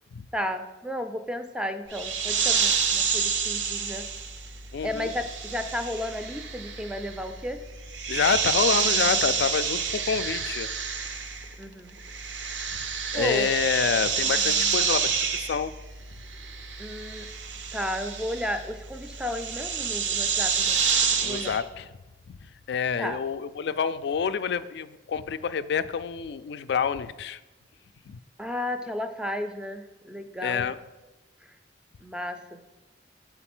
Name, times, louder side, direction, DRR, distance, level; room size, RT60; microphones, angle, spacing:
voice 1, 0.3-4.1 4.8-7.6 11.6-11.9 13.1-13.5 16.8-17.3 17.7-20.8 21.2-21.6 23.0-23.2 28.4-30.7 32.0-32.6, left 1 dB, 5° right, 8 dB, 0.4 m, -33 dB
sound 1, 1.9-11.6 11.9-21.6, right 6 dB, 85° right, 0.8 m, -28 dB
voice 2, 4.7-5.1 8.1-10.7 12.5-12.8 13.1-15.7 21.2-21.9 22.3-27.4 28.1-28.2 30.4-30.8, left 6 dB, 65° left, 14 dB, 0.4 m, -28 dB
7.9 x 4.0 x 6.0 m, 1.1 s
head